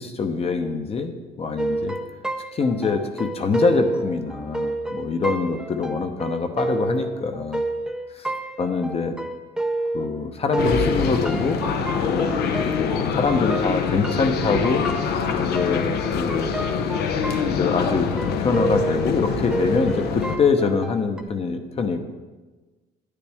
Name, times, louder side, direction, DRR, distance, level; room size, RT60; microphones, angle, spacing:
voice 1, 0.0-2.0 2.5-7.6 8.1-9.2 9.9-14.8 15.4-16.5 17.5-22.0, left 4 dB, 35° left, 7 dB, 0.9 m, -24 dB
sound 1, 1.6-10.2 10.5-21.2, right 2 dB, 5° right, 0.6 m, -30 dB
sound 2, 10.6-20.4, left 6 dB, 75° left, 0.8 m, -25 dB
10.0 x 9.2 x 3.5 m, 1.3 s
cardioid pair, 110°, 17 cm